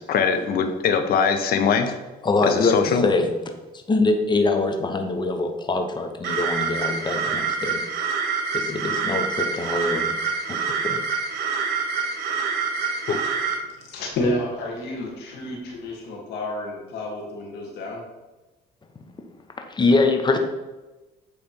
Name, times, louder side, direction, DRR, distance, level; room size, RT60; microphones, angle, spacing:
voice 1, 0.1-1.9 2.5-3.0 13.1-13.2, left 6 dB, 60° left, 7 dB, 0.8 m, -21 dB
voice 2, 2.2-3.3 3.9-7.8 8.5-10.2 10.5-11.0 19.7-20.4, left 3 dB, 25° left, 5 dB, 0.9 m, -23 dB
sound 1, 6.2-13.6, right 5 dB, 75° right, 1.4 m, -26 dB
voice 3, 13.8-18.0, left 1 dB, 80° left, -1 dB, 1.9 m, -30 dB
8.5 x 3.4 x 4.5 m, 1.1 s
cardioid pair, 110°, 17 cm